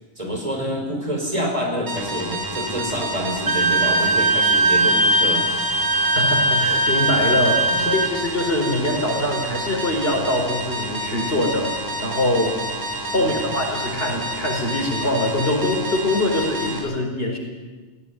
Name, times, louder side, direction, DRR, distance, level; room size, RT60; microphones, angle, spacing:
voice 1, 0.2-5.4 7.8-7.9 13.1-13.5, equal, 35° right, 1 dB, 4.8 m, -27 dB
sound 1, 1.9-16.8, right 1 dB, 20° right, 4.5 m, -29 dB
Wind instrument woodwind instrument, 3.5-8.1, right 2 dB, 60° right, 1.4 m, -19 dB
voice 2, 6.1-12.7 13.1-17.4, left 1 dB, 60° left, 1 dB, 5.1 m, -23 dB
17.5 x 17.5 x 9.8 m, 1.3 s
omnidirectional pair, 1.1 m